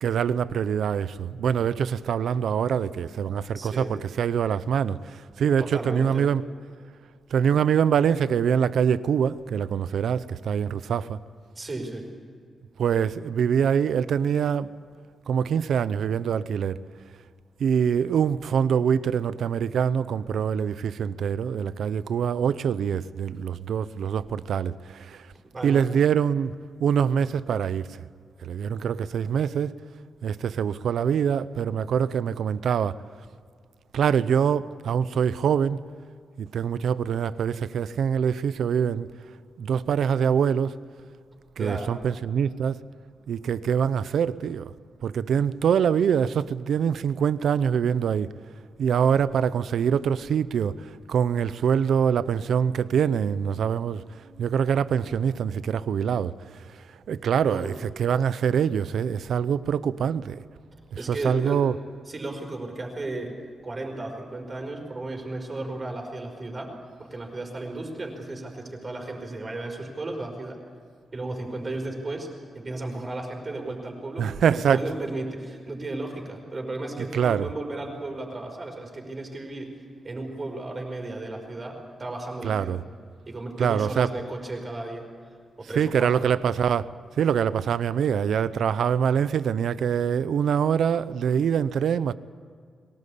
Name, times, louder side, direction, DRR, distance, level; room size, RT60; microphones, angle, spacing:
voice 1, 0.0-6.4 7.3-11.2 12.8-14.7 15.3-16.8 17.6-25.3 25.6-28.0 28.4-29.8 30.2-33.0 33.9-35.8 36.4-39.1 39.6-40.8 41.6-42.8 43.3-44.7 45.0-48.3 48.8-54.0 54.4-56.4 56.8-60.4 60.9-61.7 74.2-75.0 77.0-77.5 82.4-82.8 83.6-84.2 85.6-86.9 87.2-92.1, right 7 dB, 75° right, 0.7 m, -24 dB
voice 2, 2.7-3.9 5.6-6.3 11.5-12.1 25.5-25.8 41.6-42.0 57.5-57.7 61.0-61.6 62.1-63.4 63.6-66.7 67.0-70.6 71.1-72.3 72.5-79.7 80.0-82.8 83.3-85.1 85.6-86.3, right 2 dB, 30° right, 5.0 m, -34 dB
22.5 x 19.0 x 8.5 m
wide cardioid pair, 135°, 0 cm